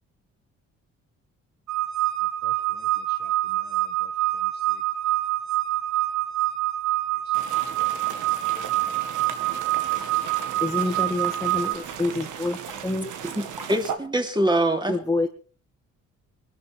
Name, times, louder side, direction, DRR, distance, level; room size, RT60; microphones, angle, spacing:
sound 1, 1.7-11.7, right 15 dB, 65° right, 2.6 m, -26 dB
voice 1, 2.4-4.1 8.4-8.7 9.9-10.0, left 5 dB, 35° left, 1.9 m, -51 dB
sound 2, 7.3-14.0, right 8 dB, 80° right, 2.1 m, -37 dB
voice 2, 10.6-13.1 14.9-15.3, left 2 dB, 10° left, 1.5 m, -27 dB
voice 3, 13.2-15.0, right 1 dB, 15° right, 3.0 m, -24 dB
20.5 x 12.0 x 4.6 m
cardioid pair, 90°, 30 cm